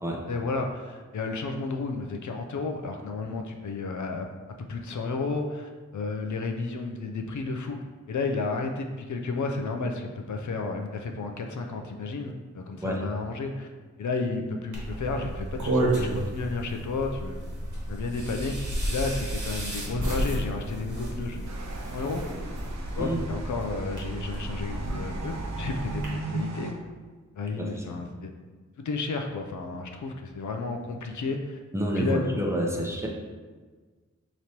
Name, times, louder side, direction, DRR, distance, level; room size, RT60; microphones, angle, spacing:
voice 1, 0.3-4.3 4.6-7.8 8.1-13.7 14.0-17.4 17.9-18.6 18.9-21.5 21.9-22.3 22.9-26.7 27.4-28.3 28.8-31.6 32.0-32.4 32.7-32.8, left 3 dB, 75° left, 3 dB, 0.5 m, -32 dB
sound 1, 14.7-26.1, right 1 dB, 80° right, 1.2 m, -32 dB
sound 2, 21.4-26.7, right 3 dB, 60° right, 0.6 m, -38 dB
voice 2, 31.7-33.1, right 1 dB, 10° right, -2 dB, 0.7 m, -28 dB
5.1 x 3.0 x 2.9 m, 1.4 s
wide cardioid pair, 70°, 30 cm